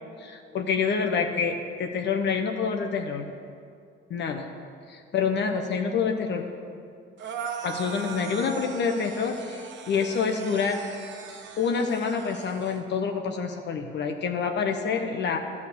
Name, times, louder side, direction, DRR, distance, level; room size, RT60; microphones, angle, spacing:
voice 1, 0.2-3.3 4.1-4.5 4.9-6.4 7.6-10.8 11.6-15.4, left 5 dB, 60° left, 4 dB, 0.9 m, -27 dB
sound 1, 7.2-12.8, right 6 dB, 65° right, 1.0 m, -39 dB
11.5 x 4.9 x 8.3 m, 2.3 s
cardioid pair, 90°, 20 cm